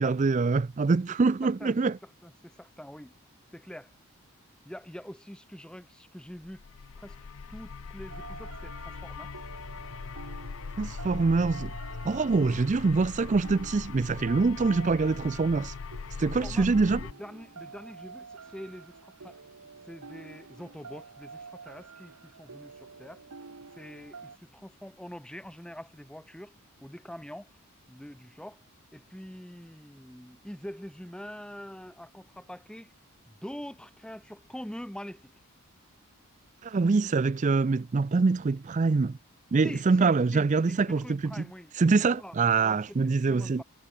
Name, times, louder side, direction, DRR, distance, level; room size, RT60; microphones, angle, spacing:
voice 1, 0.0-2.0 10.8-11.7 12.0-15.7 16.2-17.0 36.6-39.2 39.5-41.5 41.8-43.6, right 4 dB, 35° right, 0.4 m, -25 dB
voice 2, 1.4-3.1 3.5-3.9 4.6-6.6 7.0-7.2 7.5-9.3 16.2-16.7 17.0-19.4 19.8-23.2 23.8-26.5 26.8-27.6 27.9-28.6 28.9-32.9 33.3-35.3 39.6-41.7 42.1-42.3 42.6-42.8 43.2-43.6, equal, 5° left, 0.7 m, -44 dB
sound 1, 6.4-17.1, left 5 dB, 65° left, 0.5 m, -40 dB
sound 2, 8.1-24.4, right 4 dB, 85° right, 1.3 m, -48 dB
head